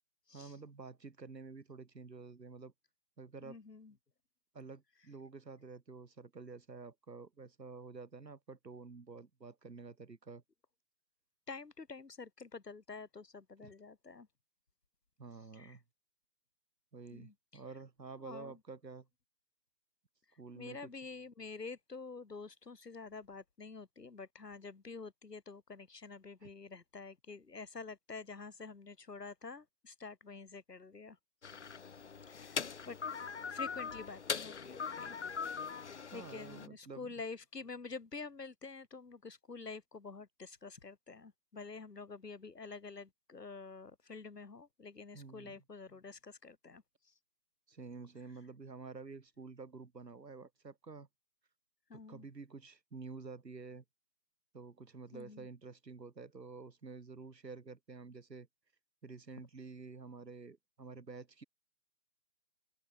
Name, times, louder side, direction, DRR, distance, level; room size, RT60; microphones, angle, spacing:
voice 1, 0.3-2.7 3.2-3.6 4.5-10.4 13.6-13.7 15.2-15.8 16.9-19.1 20.4-20.9 26.4-26.5 36.1-37.1 45.1-45.6 47.7-51.1 51.9-53.8 54.5-58.5 59.0-61.4, right 4 dB, 85° right, 3.8 m, -50 dB
voice 2, 3.4-3.9 11.5-14.3 15.5-15.8 17.1-17.6 18.2-18.6 20.6-31.2 31.5-31.9 32.3-33.0 33.5-35.2 35.8-35.9 36.1-47.1 51.9-52.3 55.1-55.5, left 4 dB, 75° left, 7.1 m, -48 dB
sound 1, 31.4-36.7, left 6 dB, 45° left, 1.8 m, -41 dB
open air
hypercardioid pair, 170°, 49 cm